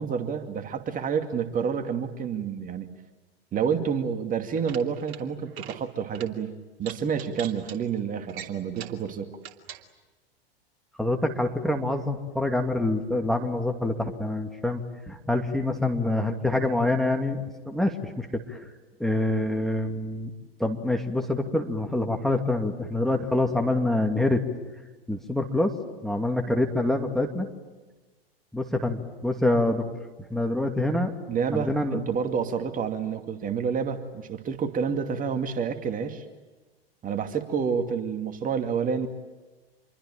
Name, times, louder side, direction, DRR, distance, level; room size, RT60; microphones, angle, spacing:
voice 1, 0.0-2.9 3.5-9.3 31.3-36.2 37.0-39.1, right 6 dB, 25° right, 7 dB, 2.5 m, -29 dB
sound 1, 4.4-5.2 5.5-5.8 6.1-6.3 6.8-7.8 8.3-9.0 9.4-9.8, right 10 dB, 55° right, 3.0 m, -41 dB
voice 2, 11.0-17.4 17.7-18.6 19.0-20.3 20.6-24.4 25.1-25.7 26.0-27.5 28.5-29.9 30.3-31.1 31.5-32.0, left 2 dB, ahead, 4 dB, 2.6 m, -26 dB
27.5 x 23.5 x 9.0 m, 1.2 s
hypercardioid pair, 100°, 30 cm